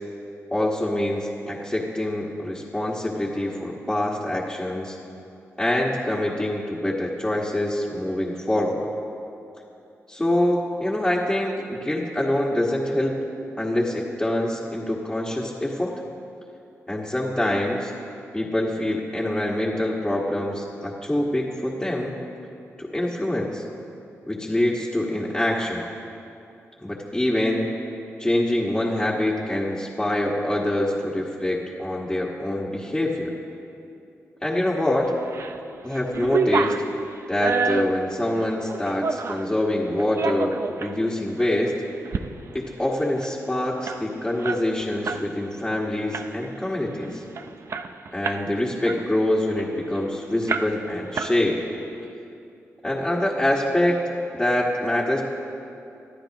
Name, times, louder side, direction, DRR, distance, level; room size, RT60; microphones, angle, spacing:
voice 1, 0.5-5.0 5.6-8.9 10.1-13.1 13.6-15.9 16.9-17.9 18.3-22.1 22.8-23.6 24.3-25.8 26.8-27.7 28.2-33.3 34.4-35.0 35.8-36.7 37.3-41.7 42.5-47.2 48.1-51.6 52.8-54.0 54.3-55.2, left 1 dB, 10° left, -6 dB, 1.6 m, -25 dB
sound 1, 35.0-35.6 35.9-39.5 40.0-40.9 41.4-41.5 41.9-42.2 42.5-42.6 42.9-45.2 45.6-45.8 46.1-46.6 47.0-47.1 47.4-48.5 48.8-50.0 50.5-50.9 51.1-51.8, right 5 dB, 60° right, 0.6 m, -28 dB
25.5 x 12.5 x 3.0 m, 2.6 s
cardioid pair, 95°, 5 cm